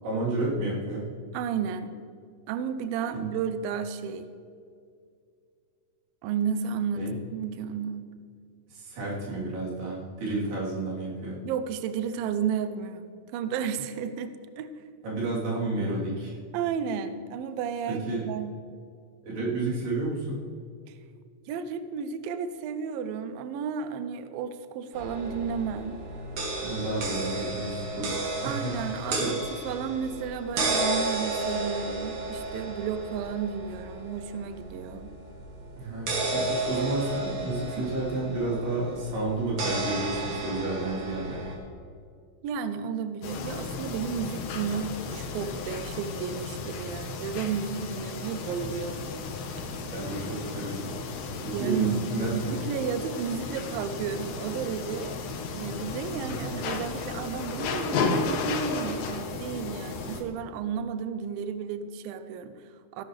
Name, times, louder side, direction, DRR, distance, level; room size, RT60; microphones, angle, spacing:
voice 1, 0.0-1.1 3.1-3.2 7.0-7.1 8.7-11.4 15.0-16.3 17.9-18.3 19.2-20.4 26.6-28.2 28.4-28.8 29.1-29.3 35.8-41.4 49.9-50.9 51.4-52.6 56.3-56.5, right 2 dB, 65° right, -6 dB, 5.4 m, -31 dB
voice 2, 1.3-2.0 2.5-4.3 6.2-7.0 7.3-8.1 11.4-13.1 13.3-14.7 16.5-18.6 20.9-21.0 21.5-26.0 28.4-35.1 37.8-37.9 42.4-49.2 49.6-49.7 51.5-55.2 55.5-63.0, right 7 dB, 85° right, 10 dB, 2.0 m, -32 dB
sound 1, 24.9-41.5, right 2 dB, 50° right, 3.2 m, -33 dB
sound 2, 43.2-60.2, left 4 dB, 65° left, 2.4 m, -34 dB
16.5 x 11.5 x 3.3 m, 2.3 s
omnidirectional pair, 5.0 m